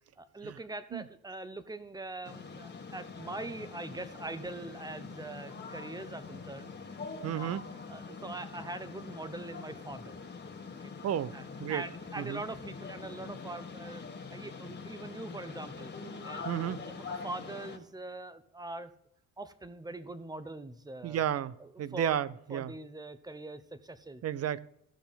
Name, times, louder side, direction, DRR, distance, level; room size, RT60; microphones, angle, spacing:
voice 1, 0.2-6.7 7.2-7.6 7.9-10.1 11.3-14.0 14.3-15.9 16.2-16.5 16.9-18.9 19.4-21.2 21.6-22.2 22.5-24.2, right 2 dB, 15° right, 0.9 m, -43 dB
sound 1, 2.2-17.8, left 4 dB, 35° left, 1.5 m, -44 dB
voice 2, 7.2-7.7 11.0-11.3 11.6-11.8 12.2-12.4 16.4-16.8 21.0-22.7 24.2-24.6, right 10 dB, 55° right, 0.6 m, -32 dB
14.5 x 5.7 x 4.1 m
cardioid pair, 90°, 30 cm